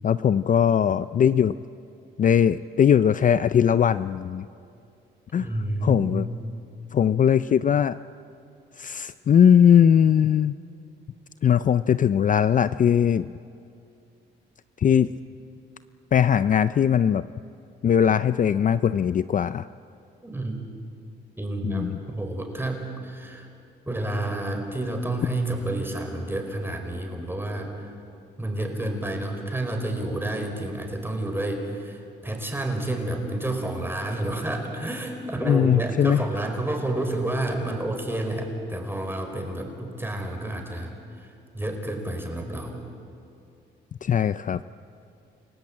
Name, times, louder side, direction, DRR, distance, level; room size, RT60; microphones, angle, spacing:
voice 1, 0.0-1.5 2.2-4.4 5.3-5.5 5.8-6.3 6.9-8.0 8.8-10.6 11.4-13.3 14.8-15.1 16.1-17.2 17.8-19.7 21.6-22.0 35.4-36.2 44.0-44.6, left 8 dB, 40° left, 14 dB, 0.5 m, -20 dB
voice 2, 5.4-6.3 20.2-20.6 21.4-23.5 23.9-27.9 28.4-42.8, right 1 dB, 10° right, 3 dB, 4.8 m, -30 dB
29.5 x 17.0 x 9.0 m, 2.5 s
cardioid pair, 90°, 20 cm